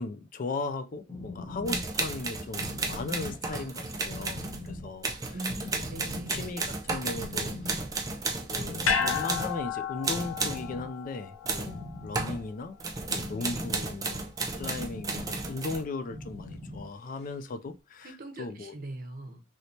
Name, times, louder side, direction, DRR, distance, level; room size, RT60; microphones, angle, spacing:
voice 1, 0.0-5.4 6.3-7.8 8.5-12.8 13.1-18.7, left 3 dB, 40° left, 0.3 m, -37 dB
sound 1, 0.9-17.5, left 2 dB, 25° left, 1.0 m, -43 dB
sound 2, 1.7-9.7 10.0-10.7 11.5-11.8 12.1-12.4 12.8-15.8, right 3 dB, 20° right, 0.4 m, -33 dB
voice 2, 5.3-6.4 18.0-19.4, right 1 dB, 45° right, 0.8 m, -41 dB
sound 3, 8.8-13.2 13.5-13.6, left 6 dB, 90° left, 0.7 m, -33 dB
3.2 x 3.0 x 2.7 m
head